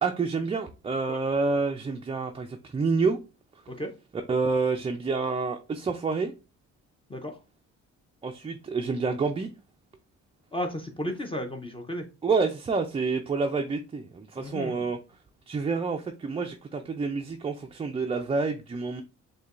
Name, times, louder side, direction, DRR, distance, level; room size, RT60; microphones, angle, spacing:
voice 1, 0.0-3.2 4.3-6.3 8.2-9.5 12.2-15.0 15.5-19.0, right 4 dB, 20° right, 0.3 m, -28 dB
voice 2, 10.5-12.1 14.4-14.9, equal, 20° left, 0.6 m, -34 dB
6.3 x 2.2 x 2.4 m
cardioid pair, 90°, 30 cm